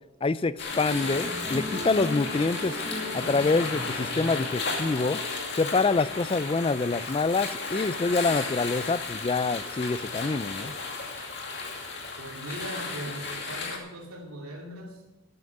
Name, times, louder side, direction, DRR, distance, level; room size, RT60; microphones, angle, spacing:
voice 1, 0.2-2.8 3.1-5.2 5.6-10.7, left 3 dB, 25° left, 16 dB, 0.3 m, -26 dB
sound 1, 0.6-13.8, left 4 dB, 50° left, 2.4 m, -34 dB
Musical instrument, 0.9-7.5, left 1 dB, 25° right, 1.5 m, -38 dB
voice 2, 12.2-15.0, right 1 dB, 80° right, 0 dB, 2.6 m, -39 dB
12.5 x 9.5 x 6.7 m, 1.0 s
head